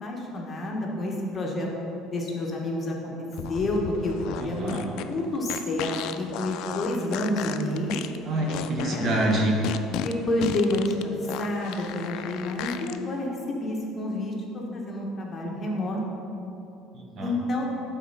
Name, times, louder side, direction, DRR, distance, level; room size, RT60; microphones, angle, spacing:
voice 1, 0.0-1.7 2.1-3.1 3.5-8.0 8.8-9.0 9.9-11.1 11.4-16.0 17.2-17.7, left 1 dB, 30° left, -1 dB, 1.2 m, -29 dB
sound 1, 3.3-13.0, left 9 dB, 70° left, 0.3 m, -34 dB
voice 2, 4.4-4.8 8.3-9.6 16.9-17.3, right 2 dB, 40° right, 0 dB, 1.2 m, -26 dB
8.3 x 4.1 x 5.6 m, 3.0 s
cardioid pair, 110°, 0 cm